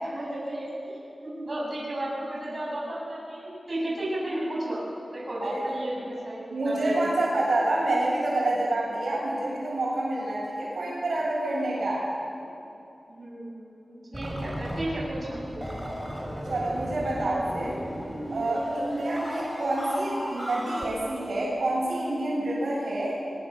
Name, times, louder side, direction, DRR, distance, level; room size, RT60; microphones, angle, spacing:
voice 1, 0.0-4.8 5.1-7.2 13.1-15.6, right 1 dB, 40° right, -5 dB, 7.3 m, -34 dB
voice 2, 6.5-12.1 16.4-17.7 18.3-23.1, right 1 dB, 85° right, -5 dB, 7.8 m, -27 dB
sound 1, 14.1-20.8, equal, 5° right, 4.4 m, -35 dB
24.5 x 22.0 x 6.9 m, 2.8 s
wide cardioid pair, 95°, 0 cm